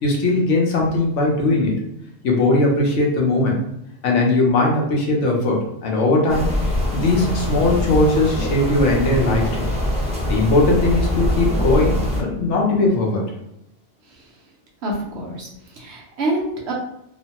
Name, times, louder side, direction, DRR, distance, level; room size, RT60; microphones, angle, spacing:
voice 1, 0.0-1.7 2.2-3.7 4.0-6.5 6.9-9.7 10.3-13.2, left 2 dB, 75° left, -1 dB, 1.0 m, -19 dB
sound 1, 6.3-12.2, left 1 dB, 10° right, 0.5 m, -23 dB
voice 2, 14.8-16.7, right 1 dB, 65° right, -2 dB, 0.9 m, -27 dB
2.9 x 2.1 x 2.8 m, 0.81 s
omnidirectional pair, 1.3 m